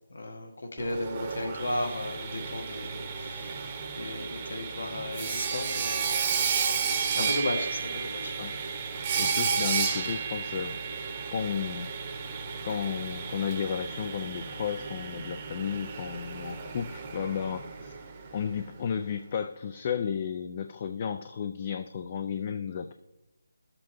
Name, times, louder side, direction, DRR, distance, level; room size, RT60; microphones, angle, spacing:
voice 1, 0.1-3.6 3.9-6.1 6.7-8.3, left 1 dB, 65° left, 3 dB, 1.4 m, -35 dB
Sawing, 0.8-18.6, right 6 dB, 25° right, 0.9 m, -33 dB
voice 2, 9.2-10.7 11.3-11.9 12.6-17.9 18.3-22.9, left 7 dB, 30° left, 9 dB, 0.3 m, -33 dB
12.0 x 7.6 x 3.0 m, 1.0 s
figure-of-eight pair, 165°, 0 cm